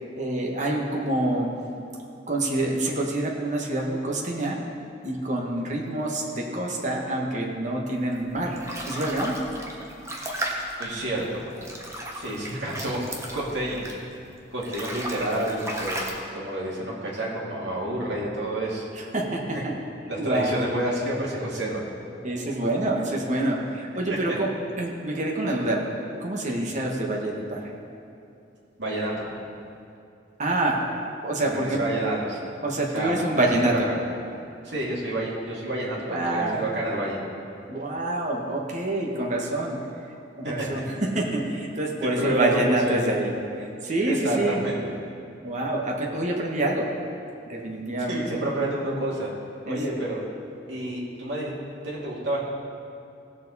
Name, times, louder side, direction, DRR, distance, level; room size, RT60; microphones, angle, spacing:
voice 1, 0.2-1.5 2.3-4.6 5.0-8.6 8.8-9.4 18.9-19.7 20.2-20.5 22.2-24.5 24.8-25.9 26.2-27.7 30.4-30.8 31.2-31.8 32.6-33.9 35.9-36.6 37.7-39.8 40.4-44.6 45.4-46.9 47.5-48.3 49.6-50.1, right 1 dB, 40° right, -1 dB, 1.4 m, -27 dB
sound 1, 8.1-14.2 14.5-16.1, right 1 dB, 15° right, 1.1 m, -35 dB
voice 2, 10.8-11.4 12.1-13.0 13.3-13.8 14.5-16.0 16.3-18.8 20.1-21.9 24.3-24.4 28.8-29.3 31.4-32.4 32.9-34.0 34.6-37.2 40.4-40.7 42.0-43.1 44.1-44.8 48.1-49.3 49.7-50.2 50.7-51.5 51.8-52.4, right 1 dB, 70° right, -5 dB, 2.4 m, -29 dB
17.0 x 7.0 x 4.1 m, 2.6 s
head